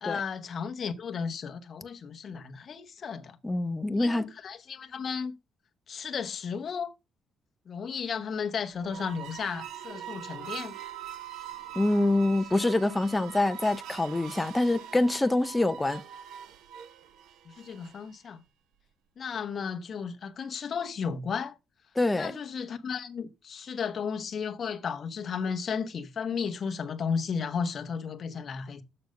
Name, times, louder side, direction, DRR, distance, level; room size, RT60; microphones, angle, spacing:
voice 1, 0.0-3.4 4.0-5.3 5.9-6.9 7.7-10.7 12.5-12.6 17.4-18.4 19.2-21.6 22.2-28.8, left 6 dB, 40° left, 0.9 m, -34 dB
voice 2, 3.4-4.3 11.8-16.0 22.0-22.3, left 2 dB, 10° left, 0.6 m, -25 dB
sound 1, 8.7-18.1, right 10 dB, 75° right, 0.7 m, -43 dB
7.0 x 6.6 x 5.2 m
cardioid pair, 160°, 0 cm